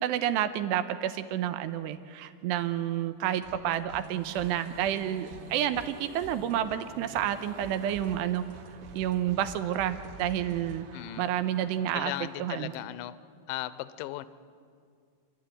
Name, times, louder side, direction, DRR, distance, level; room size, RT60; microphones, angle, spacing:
voice 1, 0.0-8.4 8.9-10.8 11.2-12.7, right 11 dB, 80° right, 10 dB, 2.8 m, -30 dB
sound 1, 3.4-4.1 4.3-10.8, right 1 dB, 45° right, 2.7 m, -49 dB
sound 2, 4.0-12.8, right 6 dB, 60° right, 2.6 m, -50 dB
voice 2, 10.9-11.3 11.9-13.2 13.5-14.3, left 16 dB, 85° left, 14 dB, 3.0 m, -37 dB
29.0 x 12.5 x 9.2 m, 2.2 s
omnidirectional pair, 5.2 m